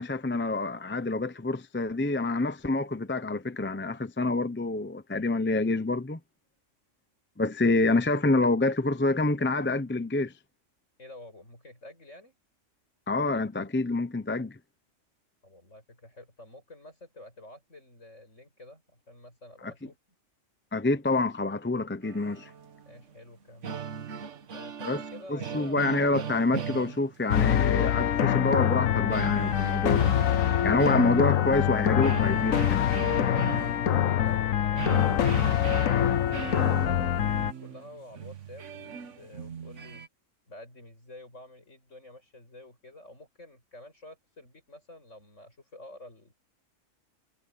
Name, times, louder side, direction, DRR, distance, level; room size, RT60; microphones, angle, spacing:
voice 1, 0.0-6.2 7.4-10.3 13.1-14.6 19.6-19.7 20.7-22.5 24.8-25.0 25.3-30.2 30.6-33.4, left 2 dB, 10° left, 0.6 m, -27 dB
voice 2, 11.0-12.3 15.4-19.9 22.8-23.9 24.5-25.8 34.0-40.0 40.5-46.3, left 1 dB, 65° left, 8.2 m, -49 dB
sound 1, 22.0-23.2 23.4-27.5 29.1-31.6 32.0-40.1, right 7 dB, 65° right, 1.5 m, -39 dB
sound 2, 27.3-37.5, left 10 dB, 85° left, 1.3 m, -25 dB
omnidirectional pair, 1.4 m